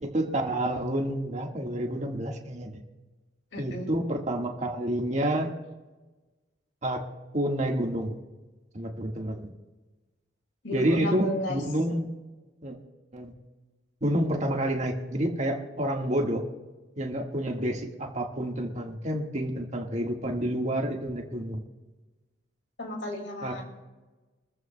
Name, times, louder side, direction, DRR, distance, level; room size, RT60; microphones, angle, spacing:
voice 1, 0.0-2.7 3.5-5.5 6.8-7.0 7.3-8.2 8.7-9.5 10.7-12.1 12.6-12.8 13.1-13.3 14.0-16.5 17.0-21.6 23.4-23.6, right 1 dB, 40° right, 1 dB, 1.7 m, -29 dB
voice 2, 3.5-3.9 10.6-11.6 22.8-23.6, left 1 dB, 75° left, 1 dB, 2.4 m, -33 dB
25.0 x 14.5 x 2.3 m, 1.2 s
head